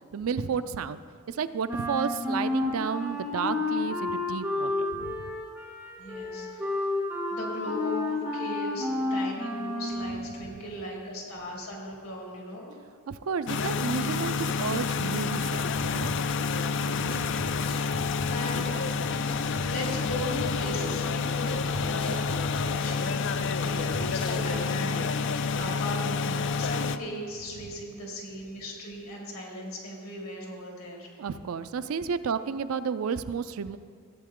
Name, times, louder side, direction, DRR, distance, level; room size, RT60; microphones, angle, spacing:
voice 1, 0.1-1.0 1.3-5.3 10.4-10.6 13.1-16.1 16.8-17.4 18.9-19.2 24.1-24.3 31.2-33.8, right 6 dB, 80° right, 13 dB, 0.4 m, -32 dB
Wind instrument woodwind instrument, 1.7-10.3, left 2 dB, 5° right, 2.2 m, -31 dB
voice 2, 6.0-7.0 7.3-12.7 17.7-18.8 19.6-23.3 23.6-25.1 25.5-31.1, left 1 dB, 90° left, -2 dB, 2.8 m, -38 dB
sound 1, 13.5-27.0, left 4 dB, 60° left, 0.4 m, -29 dB
sound 2, 15.7-24.4, left 1 dB, 25° left, 0.9 m, -41 dB
14.5 x 8.5 x 3.7 m, 2.3 s
head